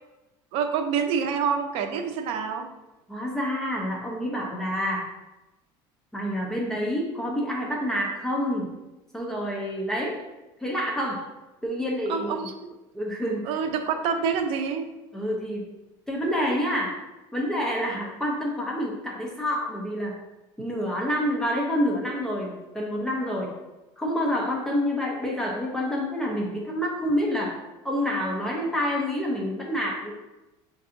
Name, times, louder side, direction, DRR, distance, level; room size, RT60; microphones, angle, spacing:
voice 1, 0.5-2.7 12.1-12.5 13.4-14.9, right 6 dB, 65° right, 6 dB, 0.5 m, -27 dB
voice 2, 3.1-5.1 6.1-8.7 9.1-10.2 10.6-11.2 11.6-12.5 12.9-13.4 15.1-15.6 16.1-17.0 17.3-20.1 20.6-23.5 24.0-27.6 27.8-30.1, equal, 5° left, -2 dB, 0.6 m, -28 dB
6.5 x 2.6 x 2.5 m, 1.0 s
cardioid pair, 145°, 11 cm